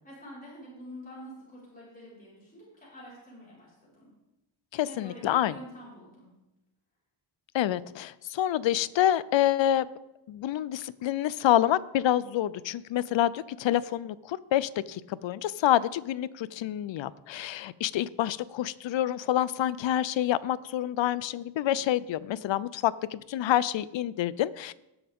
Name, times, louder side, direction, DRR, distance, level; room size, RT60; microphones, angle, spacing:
voice 1, 0.0-4.1 4.8-6.3, equal, 15° left, -8 dB, 4.8 m, -47 dB
voice 2, 4.7-5.5 7.5-9.9 10.3-24.7, left 12 dB, 65° left, 18 dB, 0.6 m, -27 dB
18.5 x 7.1 x 3.6 m, 0.93 s
wide cardioid pair, 115°, 49 cm